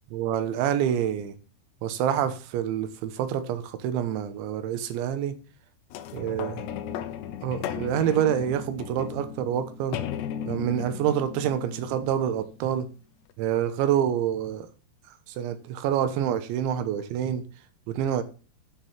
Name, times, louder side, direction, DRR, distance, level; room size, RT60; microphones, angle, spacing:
voice 1, 0.1-1.3 1.8-5.4 6.1-6.6 7.4-10.0 10.5-12.9 13.4-14.7 15.4-17.5 17.9-18.2, right 9 dB, 75° right, 3.3 m, -27 dB
sound 1, 5.9-12.7 13.3-13.4, left 9 dB, 75° left, 2.7 m, -36 dB
9.6 x 5.5 x 7.4 m
omnidirectional pair, 5.6 m